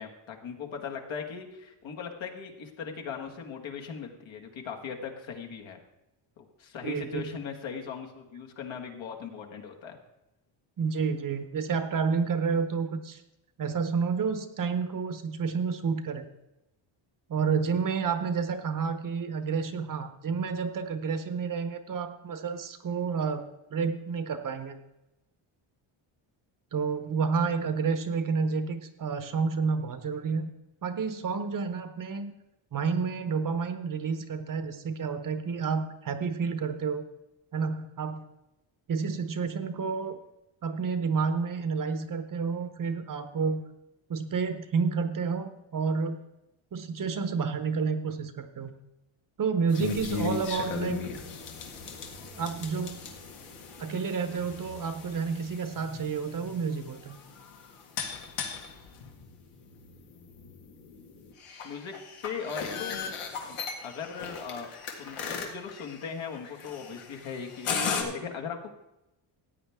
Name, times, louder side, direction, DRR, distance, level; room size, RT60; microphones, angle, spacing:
voice 1, 0.0-5.8 6.4-10.0 61.6-63.0 63.8-64.7 65.0-68.7, left 6 dB, 65° left, 2 dB, 1.8 m, -39 dB
voice 2, 6.8-7.3 10.8-13.2 13.6-16.3 17.3-24.8 26.7-30.5 30.8-32.3 32.7-37.0 37.5-38.2 38.9-40.2 40.6-43.6 44.1-46.2 46.7-48.7 49.4-51.0 52.3-53.0 53.8-57.2, right 5 dB, 40° right, 9 dB, 0.9 m, -30 dB
sound 1, 49.7-68.0, left 5 dB, 85° left, 2.0 m, -37 dB
14.5 x 9.2 x 3.6 m, 0.93 s
cardioid pair, 150°, 50 cm